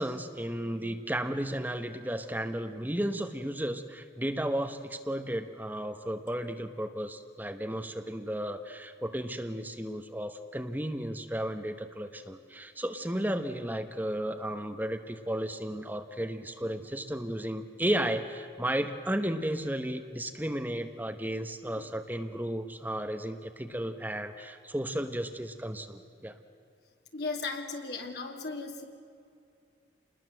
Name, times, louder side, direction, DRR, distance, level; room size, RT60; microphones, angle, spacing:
voice 1, 0.0-26.4, right 1 dB, 10° right, 7 dB, 1.0 m, -34 dB
voice 2, 27.1-28.8, left 3 dB, 70° left, 3 dB, 2.9 m, -36 dB
28.0 x 20.5 x 7.7 m, 2.5 s
head